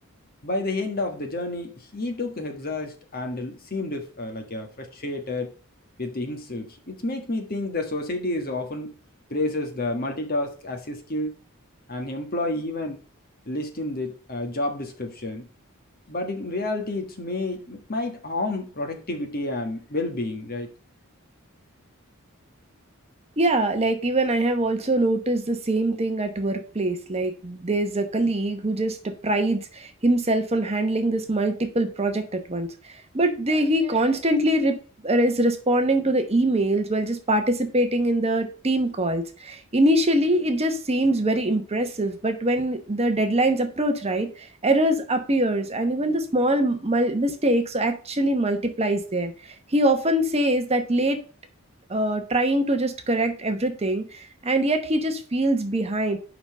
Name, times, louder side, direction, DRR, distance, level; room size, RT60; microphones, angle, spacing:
voice 1, 0.4-5.5 6.0-8.9 9.3-11.4 11.9-13.0 13.5-15.5 16.1-20.7, left 2 dB, 45° left, 4 dB, 1.5 m, -30 dB
voice 2, 23.4-34.8 35.0-51.2 51.9-56.2, right 1 dB, 30° right, 7 dB, 1.0 m, -23 dB
5.8 x 5.6 x 6.6 m, 0.37 s
head